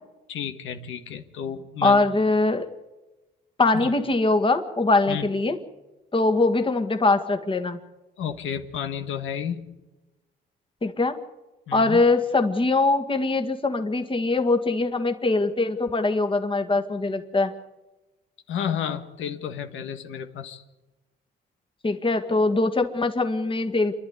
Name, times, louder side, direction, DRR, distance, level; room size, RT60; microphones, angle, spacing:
voice 1, 0.3-2.0 3.7-3.9 5.1-5.3 8.2-9.8 11.7-12.0 18.5-20.6, left 8 dB, 80° left, 6 dB, 1.7 m, -32 dB
voice 2, 1.8-2.7 3.6-5.6 6.1-7.8 10.8-11.2 11.7-17.5 21.8-23.9, left 3 dB, 25° left, 7 dB, 1.9 m, -22 dB
28.0 x 11.5 x 9.6 m, 1.1 s
cardioid pair, 90°, 20 cm